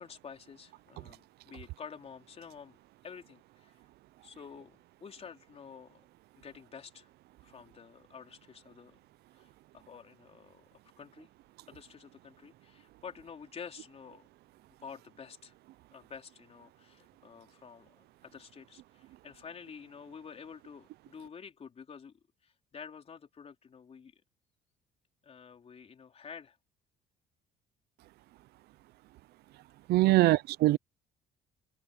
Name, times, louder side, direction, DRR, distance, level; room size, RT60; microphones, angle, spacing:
voice 1, 0.0-3.8 4.2-6.0 6.4-7.1 7.4-9.0 9.3-9.5 9.7-11.3 11.7-14.3 14.8-15.5 15.9-22.1 22.4-24.1 25.2-26.6 30.1-30.3, left 6 dB, 35° left, 3.9 m, -49 dB
voice 2, 29.9-30.8, right 18 dB, 70° right, 0.5 m, -23 dB
cardioid pair, 110°, 17 cm